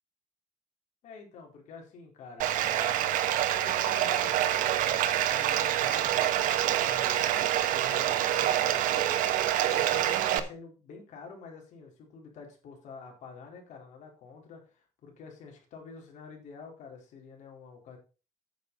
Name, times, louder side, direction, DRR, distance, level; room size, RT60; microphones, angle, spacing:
voice 1, 1.0-9.1 9.6-18.0, left 5 dB, 65° left, 2 dB, 4.1 m, -48 dB
Bathtub (filling or washing), 2.4-10.4, right 12 dB, 85° right, 1.1 m, -26 dB
9.1 x 7.0 x 5.5 m, 0.34 s
cardioid pair, 140°, 13 cm